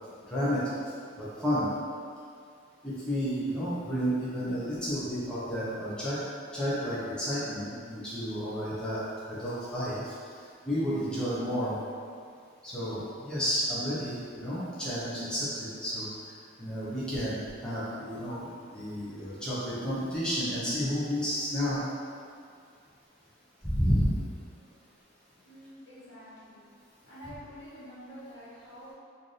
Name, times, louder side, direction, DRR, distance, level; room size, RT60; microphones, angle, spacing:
voice 1, 0.3-0.7 1.2-1.7 2.8-6.3 6.5-10.1 10.6-11.8 12.6-16.1 16.6-21.8 23.6-24.2, equal, 5° left, -11 dB, 0.8 m, -31 dB
voice 2, 25.4-26.6 27.1-28.9, equal, 80° left, -9 dB, 1.3 m, -47 dB
3.2 x 2.6 x 3.9 m, 2.2 s
head